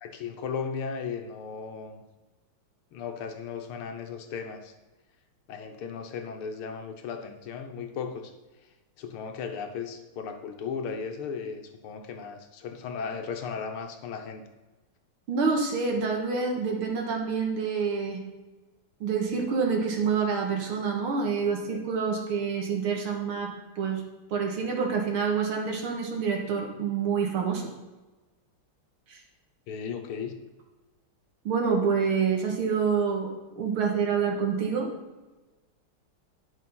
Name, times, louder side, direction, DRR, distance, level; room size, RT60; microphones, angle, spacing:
voice 1, 0.0-2.0 2.9-4.7 5.5-8.3 9.0-14.4 29.7-30.3, left 6 dB, 85° left, 6 dB, 1.9 m, -36 dB
voice 2, 15.3-18.2 19.0-24.0 24.3-27.7 29.1-29.2 31.4-34.9, right 5 dB, 80° right, 1 dB, 2.6 m, -27 dB
11.0 x 6.5 x 5.5 m, 1.1 s
omnidirectional pair, 2.3 m